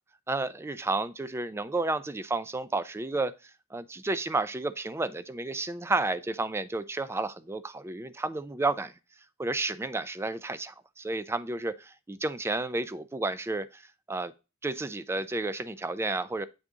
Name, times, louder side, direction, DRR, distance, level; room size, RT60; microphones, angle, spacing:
voice 1, 0.3-3.3 3.7-8.9 9.4-13.8 14.1-14.3 14.6-16.5, right 2 dB, 15° right, 0.3 m, -31 dB
7.8 x 3.6 x 3.7 m
head